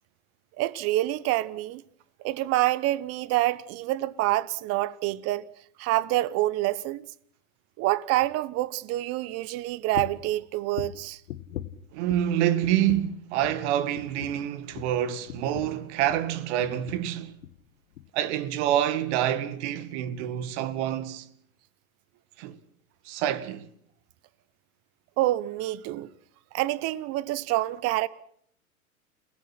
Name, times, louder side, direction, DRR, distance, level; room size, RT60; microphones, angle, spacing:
voice 1, 0.6-1.8 2.2-5.4 5.8-7.0 7.8-11.2 25.2-26.1 26.5-28.1, right 16 dB, 35° right, 1.0 m, -27 dB
sound 1, 9.9-10.3 10.7-12.4 12.6-13.2 13.4-13.7 14.0-16.3 16.6-17.1 17.4-17.6 18.0-18.1, left 12 dB, 65° left, 1.7 m, -40 dB
voice 2, 11.9-17.3 18.1-21.2 22.4-22.6 23.1-23.7, right 11 dB, 50° right, 2.0 m, -27 dB
29.5 x 18.5 x 6.0 m
hypercardioid pair, 115°, 44 cm